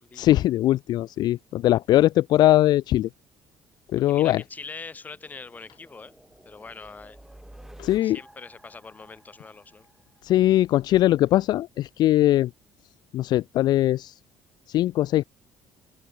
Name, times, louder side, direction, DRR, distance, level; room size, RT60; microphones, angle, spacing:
voice 1, 0.1-3.1 3.9-4.4 7.8-8.2 10.2-12.5 13.1-14.2 14.7-15.2, left 14 dB, 55° left, 0.4 m, -21 dB
voice 2, 4.1-6.1 6.4-7.2 8.0-9.9, left 4 dB, 20° left, 2.7 m, -42 dB
sound 1, 4.5-10.8, right 1 dB, 5° right, 6.7 m, -52 dB
cardioid pair, 155°, 9 cm